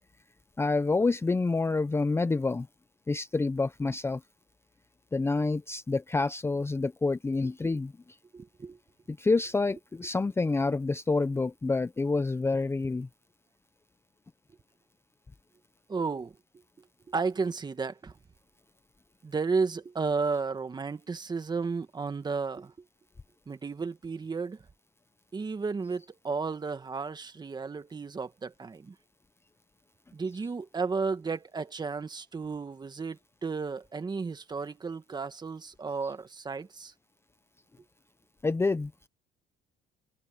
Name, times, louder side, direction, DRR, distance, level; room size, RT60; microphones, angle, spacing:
voice 1, 0.6-2.7 3.1-4.2 5.1-7.9 9.1-13.1 38.4-39.1, left 3 dB, 15° left, 0.6 m, -28 dB
voice 2, 8.3-8.8 15.9-16.3 17.1-18.1 19.2-22.7 23.5-24.6 25.3-28.9 30.1-36.9, right 4 dB, 25° right, 1.6 m, -33 dB
cardioid pair, 110°, 17 cm